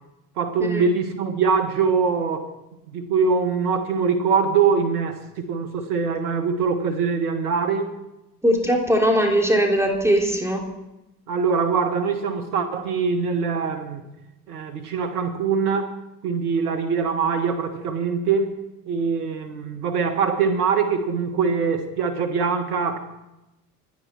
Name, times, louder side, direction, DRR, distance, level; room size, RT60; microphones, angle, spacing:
voice 1, 0.4-2.5 2.9-7.9 11.3-14.0 14.5-15.9 16.2-18.6 18.9-23.0, right 5 dB, 75° right, 1.7 m, -23 dB
voice 2, 8.4-10.6, equal, 5° right, 3.5 m, -20 dB
26.5 x 9.8 x 4.6 m
figure-of-eight pair, 55°, 47 cm